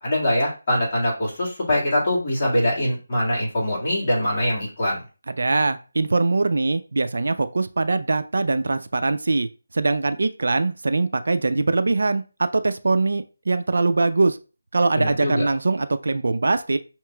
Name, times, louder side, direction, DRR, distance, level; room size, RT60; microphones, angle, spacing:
voice 1, 0.0-5.0 15.0-15.5, left 1 dB, 30° left, -6 dB, 1.8 m, -23 dB
voice 2, 5.3-9.5 9.7-14.4 14.7-16.8, right 3 dB, 65° right, 11 dB, 0.3 m, -22 dB
5.5 x 2.9 x 2.2 m, 0.33 s
figure-of-eight pair, 170°, 0 cm